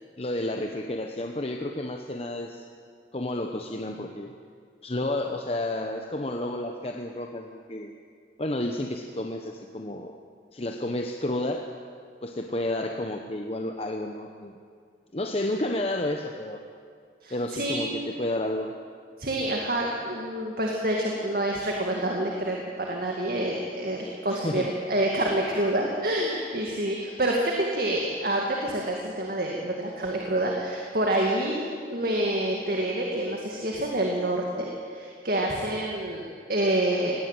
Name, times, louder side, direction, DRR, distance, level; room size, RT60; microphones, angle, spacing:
voice 1, 0.2-2.6 3.1-4.3 4.8-7.9 8.4-10.2 10.5-11.7 12.2-14.6 15.1-16.6 17.3-18.7 24.3-24.7, left 1 dB, 30° left, 4 dB, 1.0 m, -31 dB
voice 2, 17.2-18.0 19.2-37.1, right 1 dB, 50° right, 0 dB, 2.2 m, -27 dB
19.5 x 17.0 x 9.0 m, 2.2 s
head